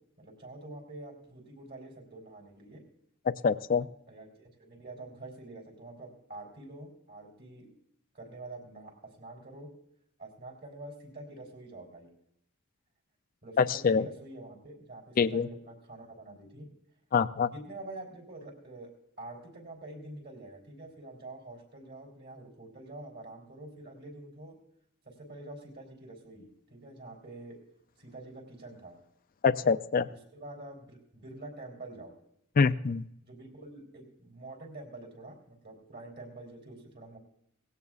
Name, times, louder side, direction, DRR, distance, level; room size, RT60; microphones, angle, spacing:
voice 1, 0.2-2.8 4.1-7.7 8.1-9.7 10.2-12.1 13.4-16.7 17.5-18.9 19.2-24.6 25.1-27.6 28.0-29.0 30.1-32.1 33.2-37.2, right 2 dB, 50° right, 0 dB, 3.7 m, -46 dB
voice 2, 3.4-3.9 13.6-14.0 15.2-15.5 17.1-17.5 29.4-30.1 32.6-33.0, left 5 dB, 40° left, 13 dB, 0.4 m, -25 dB
18.0 x 16.5 x 2.4 m, 0.76 s
head